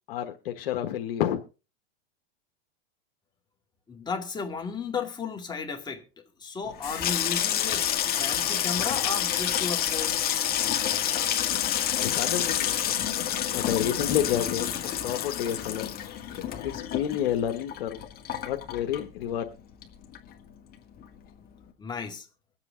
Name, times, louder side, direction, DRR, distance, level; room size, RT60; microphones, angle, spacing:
voice 1, 0.1-1.4 11.9-13.1 13.5-14.7 15.0-15.9 16.6-18.0 18.4-19.5, left 10 dB, 75° left, 1.3 m, -29 dB
voice 2, 3.9-6.0 6.4-7.9 8.1-10.3 21.8-22.3, left 5 dB, 15° left, 2.1 m, -34 dB
Water tap faucet / Sink (filling or washing), 6.7-19.5 19.8-20.5 20.7-21.1, left 10 dB, 30° left, 1.8 m, -28 dB
23.0 x 8.1 x 3.7 m
supercardioid pair, 135°, 29 cm